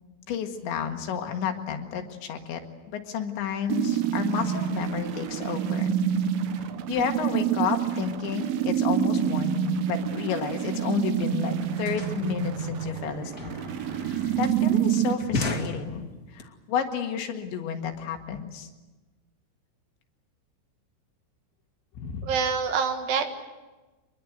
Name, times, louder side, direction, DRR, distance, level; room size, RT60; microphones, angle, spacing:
voice 1, 0.3-2.6 2.9-6.0 6.9-13.6 14.4-18.7 22.0-22.3, left 7 dB, 75° left, 5 dB, 4.0 m, -31 dB
sound 1, 3.7-15.1, right 9 dB, 85° right, 3.8 m, -27 dB
sound 2, 10.9-11.0 11.2-16.4, left 3 dB, 55° left, 1.0 m, -36 dB
voice 2, 22.2-23.3, right 6 dB, 65° right, 6 dB, 3.5 m, -26 dB
25.0 x 22.5 x 8.0 m, 1.2 s
omnidirectional pair, 5.5 m